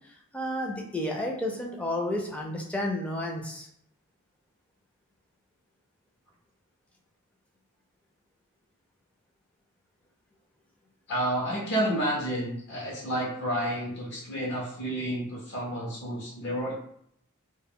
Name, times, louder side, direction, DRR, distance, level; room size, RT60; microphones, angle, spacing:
voice 1, 0.3-3.7, left 1 dB, 5° left, 0 dB, 0.4 m, -31 dB
voice 2, 11.1-16.8, right 1 dB, 55° left, -3 dB, 0.6 m, -30 dB
2.1 x 2.0 x 3.6 m, 0.70 s
head